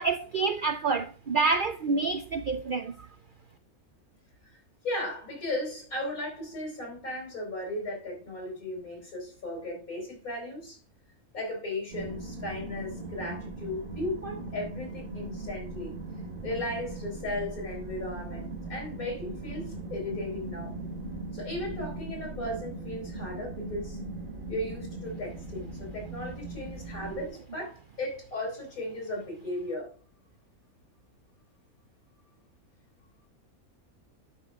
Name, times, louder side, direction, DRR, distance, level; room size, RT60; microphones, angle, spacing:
voice 1, 0.0-3.1 27.1-27.2, right 4 dB, 90° right, 0.4 m, -28 dB
voice 2, 4.5-10.8 11.3-15.9 16.4-20.7 21.3-24.0 24.5-29.9, left 1 dB, 70° left, 4.9 m, -36 dB
sound 1, 11.9-27.3, right 2 dB, 40° right, 1.3 m, -39 dB
11.0 x 6.1 x 3.5 m
omnidirectional pair, 1.5 m